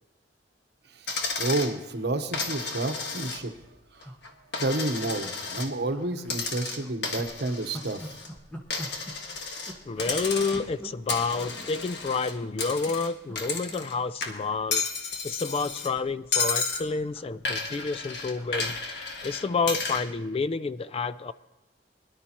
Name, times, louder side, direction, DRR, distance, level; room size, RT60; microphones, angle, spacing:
Coin (dropping), 1.1-1.7 2.3-3.6 4.0-5.7 6.2-8.3 8.7-9.7 10.0-10.7 11.1-13.9 14.2-15.9 16.3-16.9 17.4-20.1, left 4 dB, 70° left, 1.5 m, -32 dB
voice 1, 1.4-4.1 4.6-8.0 10.5-10.6 11.6-11.7, right 2 dB, 65° right, 7 dB, 1.0 m, -30 dB
sound 1, 3.4-3.5 4.0-4.7 5.0-5.2 5.5-6.5 6.8-11.0 11.3-11.6 12.2-12.9 13.2-13.4 13.7-14.8 15.1-19.7 20.0-20.2, equal, 10° left, 1.4 m, -46 dB
voice 2, 9.9-14.8 15.2-21.3, left 4 dB, 35° left, 15 dB, 0.3 m, -29 dB
22.0 x 11.5 x 2.9 m, 1.0 s
head